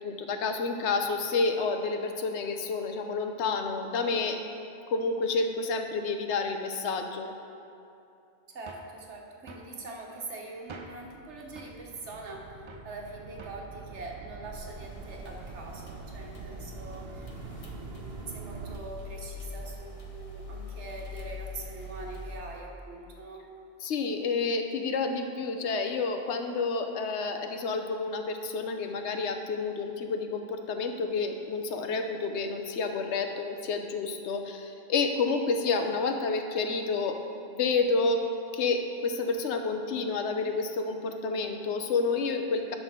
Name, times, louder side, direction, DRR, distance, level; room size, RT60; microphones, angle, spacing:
voice 1, 0.0-4.4 4.9-7.3 23.8-37.2 37.5-38.2 38.5-42.7, left 4 dB, 80° left, 5 dB, 1.0 m, -29 dB
voice 2, 8.5-17.3 17.6-23.4, right 3 dB, 85° right, 0 dB, 1.4 m, -43 dB
sound 1, 8.7-9.0 9.5-9.7 10.7-11.1 11.6-11.8 12.7-12.9 13.4-13.7, right 3 dB, 50° right, 0.3 m, -47 dB
sound 2, 10.8-18.8, right 4 dB, 65° right, 0.8 m, -44 dB
sound 3, 14.6-22.4, left 2 dB, 35° left, 0.8 m, -43 dB
11.0 x 3.7 x 6.6 m, 2.6 s
omnidirectional pair, 1.2 m